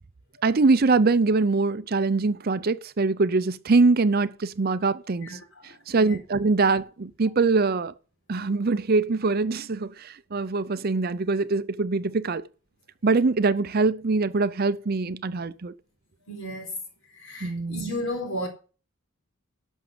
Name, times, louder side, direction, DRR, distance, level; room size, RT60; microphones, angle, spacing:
voice 1, 0.4-5.4 5.9-7.9 8.3-12.4 13.0-15.7 17.4-17.9, right 3 dB, 45° right, 0.6 m, -23 dB
voice 2, 5.7-6.2 16.3-16.7 17.2-18.5, equal, 70° left, 4.3 m, -33 dB
12.0 x 6.2 x 6.7 m
head